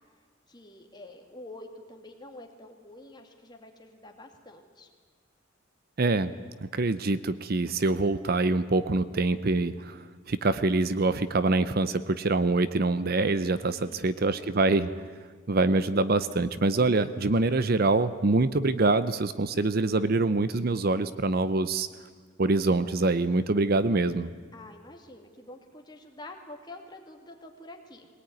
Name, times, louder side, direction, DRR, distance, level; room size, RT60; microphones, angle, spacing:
voice 1, 0.5-4.9 13.7-14.5 24.5-28.1, left 2 dB, 20° left, 3 dB, 2.5 m, -47 dB
voice 2, 6.0-6.3 6.6-14.9 15.5-21.9 22.4-24.3, right 3 dB, 50° right, 14 dB, 0.7 m, -25 dB
21.5 x 18.5 x 9.6 m, 1.5 s
head